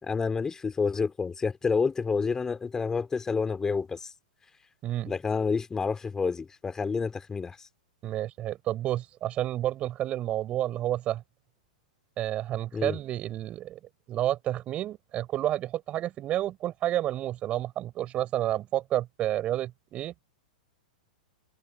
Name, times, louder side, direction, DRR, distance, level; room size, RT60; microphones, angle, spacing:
voice 1, 0.0-4.1 5.0-7.7 12.7-13.0, left 5 dB, 15° left, 3.3 m, -29 dB
voice 2, 4.8-5.1 8.0-11.2 12.2-13.8 14.1-20.1, right 13 dB, 30° right, 5.4 m, -30 dB
figure-of-eight pair, 100°, 4 cm